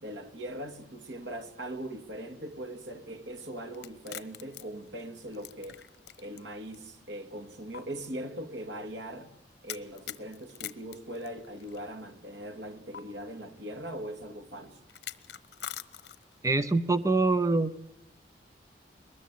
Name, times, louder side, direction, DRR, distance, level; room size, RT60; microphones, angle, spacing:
voice 1, 0.0-5.8 6.2-9.4 9.6-14.8, right 1 dB, 90° right, 2.4 m, -40 dB
sound 1, 3.7-6.4 6.7-6.8 7.7-7.8 9.7-11.8 12.9-13.0 14.9-16.4, left 11 dB, 70° left, 1.1 m, -42 dB
voice 2, 16.4-17.9, right 3 dB, 20° right, 0.8 m, -25 dB
23.0 x 21.0 x 7.6 m
head